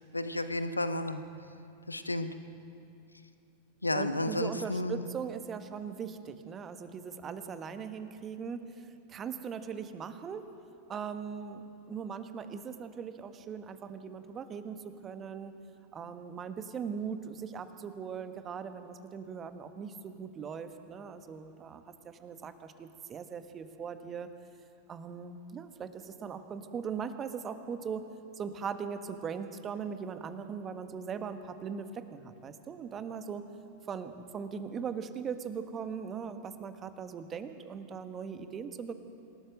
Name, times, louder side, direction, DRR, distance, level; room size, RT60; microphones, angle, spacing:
voice 1, 0.1-1.2 1.9-2.3 3.8-5.0, left 1 dB, 85° left, 10 dB, 1.1 m, -32 dB
voice 2, 3.9-10.4 10.9-15.5 15.9-24.3 24.9-28.1 28.4-33.5 33.9-39.0, right 6 dB, 25° right, 9 dB, 1.5 m, -40 dB
27.0 x 18.0 x 6.6 m, 2.6 s
figure-of-eight pair, 90°, 0 cm